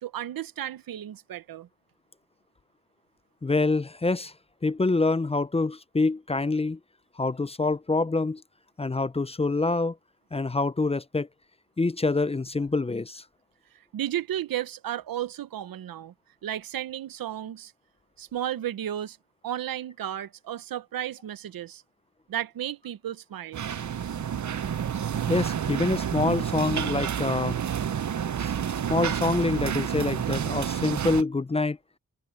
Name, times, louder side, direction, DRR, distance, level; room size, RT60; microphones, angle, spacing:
voice 1, 0.0-1.7 13.9-16.1 16.4-17.7 18.2-19.2 19.4-21.8 22.3-23.6, right 11 dB, 85° right, 0.8 m, -33 dB
voice 2, 3.4-4.3 4.6-6.8 7.2-8.4 8.8-10.0 10.3-11.3 11.8-13.2 25.3-27.6 28.4-28.5 28.9-31.8, left 3 dB, 20° left, 0.5 m, -26 dB
sound 1, 23.5-31.2, right 8 dB, 55° right, 0.9 m, -29 dB
cardioid pair, 75°, 34 cm